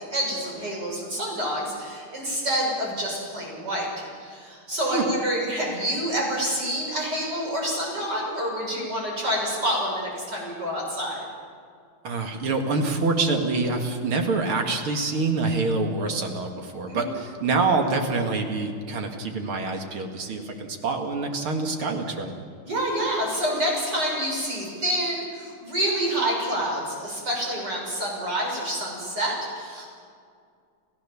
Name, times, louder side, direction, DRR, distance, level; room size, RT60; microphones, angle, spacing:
voice 1, 0.0-11.2 16.9-17.1 22.6-29.9, equal, 50° right, -2 dB, 6.9 m, -28 dB
voice 2, 12.0-22.3, right 3 dB, 80° right, 4 dB, 2.9 m, -26 dB
30.0 x 15.0 x 7.1 m, 2.2 s
omnidirectional pair, 2.3 m